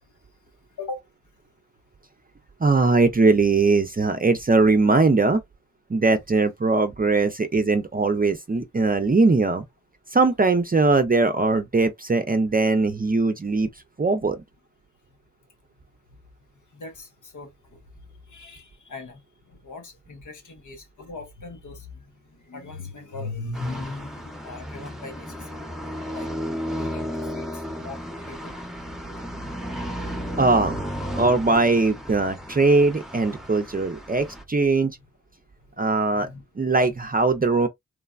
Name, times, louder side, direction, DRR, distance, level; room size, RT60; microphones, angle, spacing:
voice 1, 2.6-5.4 5.9-9.6 10.1-13.7 14.0-14.4 30.4-30.8 31.2-34.9 35.8-36.3 36.6-37.7, right 3 dB, 30° right, 0.5 m, -20 dB
voice 2, 16.7-17.5 18.3-19.2 19.5-22.0 22.4-25.4 26.1-26.3 26.7-28.0 28.3-28.5 36.1-36.4 36.8-37.0, left 3 dB, 80° left, 0.8 m, -38 dB
sound 1, 23.5-34.4, equal, ahead, 0.8 m, -34 dB
3.2 x 2.0 x 2.4 m
cardioid pair, 45°, 30 cm